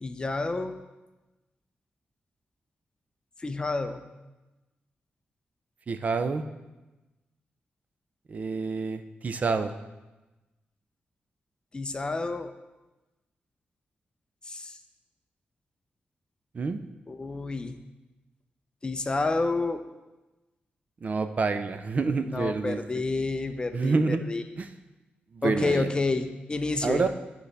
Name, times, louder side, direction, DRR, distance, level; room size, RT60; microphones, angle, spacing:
voice 1, 0.0-0.7 3.4-4.1 11.7-12.5 14.4-14.8 17.1-17.8 18.8-19.8 22.3-24.4 25.4-27.1, left 3 dB, 25° left, 8 dB, 0.5 m, -29 dB
voice 2, 5.9-6.4 8.3-9.7 16.5-16.8 21.0-22.8 23.7-24.2 24.6-24.7 25.3-25.9 26.8-27.1, right 4 dB, 40° right, 9 dB, 0.5 m, -27 dB
11.5 x 4.0 x 3.3 m, 1.1 s
wide cardioid pair, 140°, 4 cm